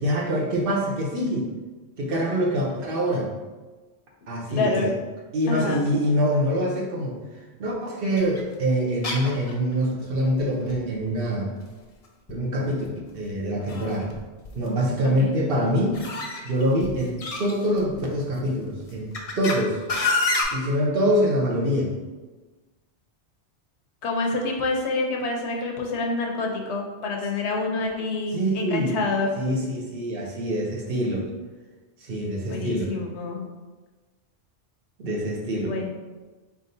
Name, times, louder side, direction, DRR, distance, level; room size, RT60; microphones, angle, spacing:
voice 1, 0.0-1.5 2.0-3.3 4.3-4.9 5.3-7.2 7.6-11.5 12.3-12.9 13.1-14.1 14.5-16.0 16.4-19.8 20.5-21.9 28.3-29.0 29.4-31.3 32.0-32.9 35.0-35.7, equal, 60° right, -1 dB, 0.9 m, -25 dB
voice 2, 4.5-4.9 5.5-5.9 15.0-15.3 24.0-29.3 32.5-33.5 35.6-35.9, left 3 dB, 75° left, 1 dB, 0.9 m, -27 dB
sound 1, 8.2-8.4 9.0-9.7 10.0-10.1 10.4-10.5 10.7-11.2 12.3-12.4 13.1-14.2 14.4-14.8 15.9-18.1 18.8-19.5 19.9-20.4, left 3 dB, 45° left, 0.5 m, -28 dB
4.1 x 3.5 x 2.6 m, 1.3 s
omnidirectional pair, 1.2 m